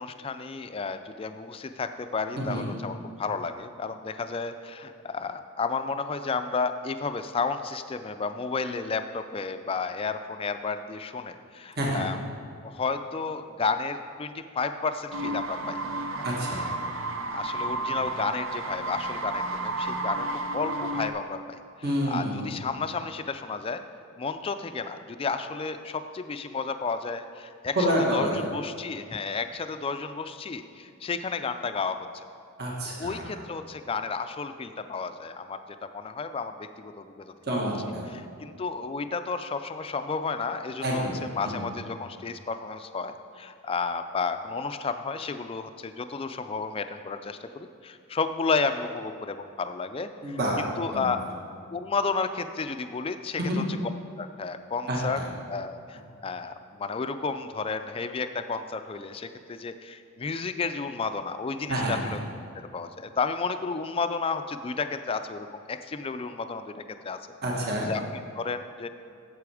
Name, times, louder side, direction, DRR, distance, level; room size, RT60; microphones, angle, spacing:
voice 1, 0.0-12.2 12.6-15.8 16.2-16.3 17.3-21.6 22.1-23.8 24.2-27.9 28.1-32.2 33.0-37.3 38.1-41.1 41.4-51.2 51.7-53.6 54.2-55.2 55.5-62.2 62.5-66.7 67.0-67.2 67.9-68.9, left 4 dB, 25° left, 9 dB, 0.3 m, -32 dB
voice 2, 2.4-2.7 11.8-12.0 16.2-16.7 21.8-22.6 27.7-28.4 32.6-33.3 37.4-38.0 40.8-41.1 41.5-41.6 50.2-50.6 50.9-51.1 53.4-53.6 54.9-55.3 61.7-62.1 67.4-67.9, equal, 45° right, -3 dB, 1.5 m, -28 dB
sound 1, 15.1-21.1, right 2 dB, 65° right, 0.6 m, -32 dB
8.4 x 7.7 x 4.8 m, 2.4 s
head